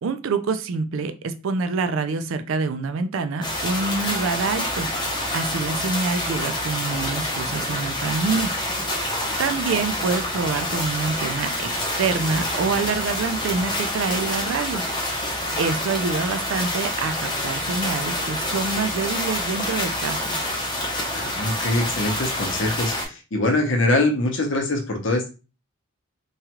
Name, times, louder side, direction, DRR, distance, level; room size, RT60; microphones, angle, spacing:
voice 1, 0.0-8.5 8.8-14.8 15.6-20.4, right 4 dB, 70° right, 9 dB, 0.4 m, -26 dB
sound 1, 3.4-23.1, left 1 dB, 20° left, 0.6 m, -27 dB
voice 2, 21.1-25.3, left 2 dB, 60° left, 3 dB, 0.7 m, -23 dB
3.1 x 2.4 x 2.8 m, 0.32 s
head